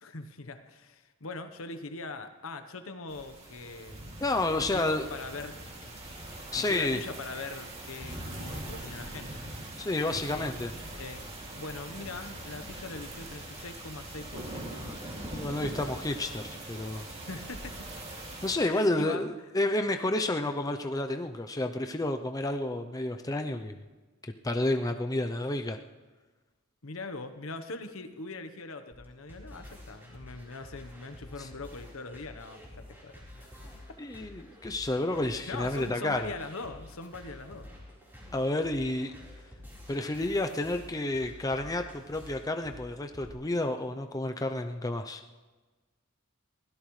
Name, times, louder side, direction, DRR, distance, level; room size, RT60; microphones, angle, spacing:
voice 1, 0.0-4.1 4.5-5.9 6.5-9.4 10.3-10.5 10.9-11.3 11.5-15.1 17.3-17.9 18.6-19.2 26.8-33.6 35.5-37.7, left 3 dB, 70° left, 9 dB, 1.0 m, -42 dB
sound 1, 3.1-18.5, right 1 dB, 30° right, 2.5 m, -42 dB
voice 2, 4.2-5.1 6.5-7.0 9.8-10.7 15.3-17.0 18.4-23.8 24.4-25.8 31.4-31.5 34.0-36.3 38.3-39.1 39.9-45.2, left 2 dB, 15° left, 6 dB, 0.5 m, -30 dB
sound 2, 28.9-43.3, left 1 dB, 10° right, 4.1 m, -49 dB
22.5 x 16.5 x 3.2 m, 1.3 s
head